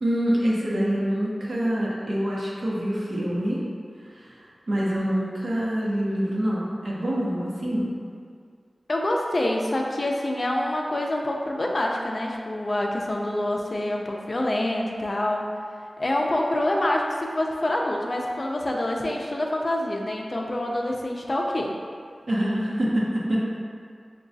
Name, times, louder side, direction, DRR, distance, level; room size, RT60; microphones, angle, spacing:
voice 1, 0.0-3.6 4.1-4.4 4.7-7.9 22.3-23.4, equal, 65° right, -6 dB, 0.8 m, -25 dB
voice 2, 8.9-15.5 16.0-21.8, left 1 dB, 40° left, 0 dB, 0.4 m, -26 dB
5.9 x 2.3 x 2.6 m, 2.1 s
wide cardioid pair, 85°, 0 cm